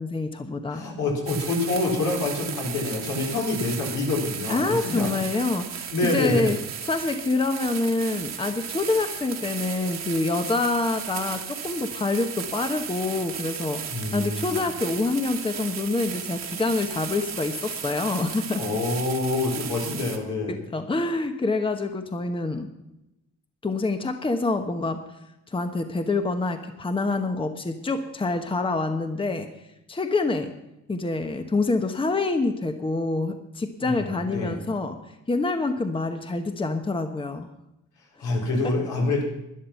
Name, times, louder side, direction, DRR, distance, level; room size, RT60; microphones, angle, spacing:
voice 1, 0.0-0.8 4.5-6.6 6.9-13.8 14.1-18.8 20.5-22.7 23.6-25.0 25.5-29.5 29.9-30.5 30.9-35.0 35.3-37.5 38.6-38.7, left 3 dB, 15° left, 7 dB, 1.0 m, -26 dB
voice 2, 0.7-5.2 5.9-6.5 13.9-14.7 18.5-20.6 33.8-34.6 38.2-39.2, left 2 dB, 75° left, -1 dB, 4.1 m, -26 dB
sound 1, 1.3-20.2, right 8 dB, 60° right, 1.7 m, -35 dB
12.0 x 11.0 x 5.8 m, 0.89 s
cardioid pair, 90°, 30 cm